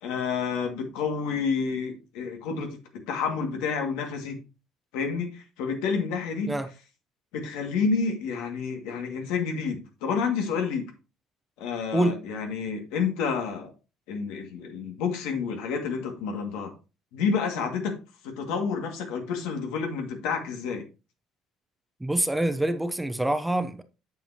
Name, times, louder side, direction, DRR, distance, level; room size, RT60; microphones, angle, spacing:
voice 1, 0.0-2.8 3.1-4.4 4.9-6.5 7.3-10.9 11.6-13.7 14.1-16.7 17.1-18.0 18.2-20.8, left 5 dB, 85° left, 2.1 m, -29 dB
voice 2, 22.0-23.8, right 1 dB, 5° right, 0.7 m, -25 dB
8.1 x 7.0 x 2.9 m
cardioid pair, 120°, 0 cm